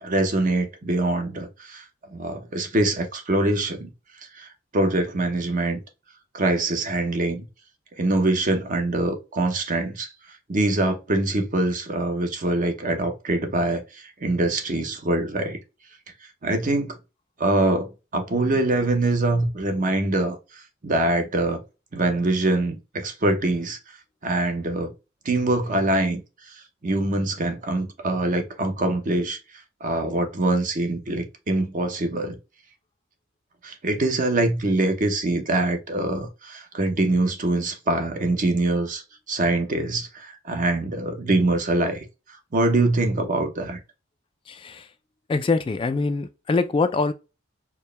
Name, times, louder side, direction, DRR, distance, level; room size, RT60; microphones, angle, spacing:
voice 1, 0.0-1.8 2.1-3.9 4.3-5.8 6.3-7.5 8.0-10.1 10.5-15.6 16.4-17.0 17.4-21.6 21.9-23.8 24.2-24.9 25.2-26.2 26.5-26.6 26.8-29.4 29.8-32.4 33.6-39.0 39.3-42.0 42.5-43.8, right 2 dB, 45° right, 0.8 m, -24 dB
voice 2, 44.5-44.9 45.3-47.1, left 3 dB, 25° left, 0.3 m, -24 dB
4.5 x 2.1 x 3.2 m
head